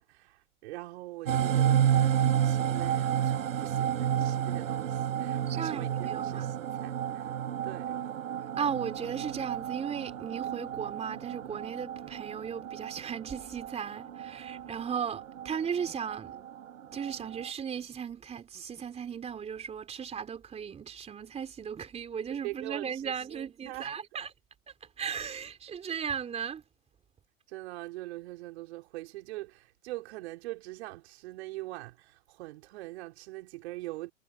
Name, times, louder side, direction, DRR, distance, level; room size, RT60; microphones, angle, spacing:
voice 1, 0.0-7.4 7.6-8.1 22.3-23.9 27.5-34.1, right 19 dB, 55° right, 4.8 m, -43 dB
sound 1, 1.3-17.5, right 10 dB, 75° right, 4.2 m, -31 dB
voice 2, 5.5-6.5 8.6-16.4 16.9-24.3 24.8-26.6, right 7 dB, 15° right, 3.8 m, -36 dB
hypercardioid pair, 130°, 40 cm